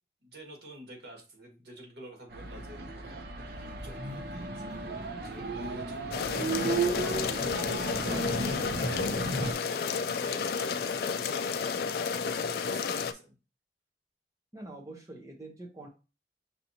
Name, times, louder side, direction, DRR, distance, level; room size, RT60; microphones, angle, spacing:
voice 1, 0.2-6.4 6.8-9.1 9.5-13.3, right 1 dB, 85° right, 0 dB, 1.6 m, -48 dB
sound 1, 2.3-9.5, right 3 dB, 60° right, 0.5 m, -34 dB
sound 2, 3.6-6.0 6.2-6.6 6.8-7.2 7.5-7.8 8.1-8.4 8.7-9.0, right 1 dB, 5° left, 1.0 m, -53 dB
sound 3, 6.1-13.1, left 6 dB, 60° left, 0.3 m, -31 dB
voice 2, 14.5-15.9, right 2 dB, 20° right, -1 dB, 0.7 m, -45 dB
5.7 x 2.9 x 2.7 m, 0.31 s
head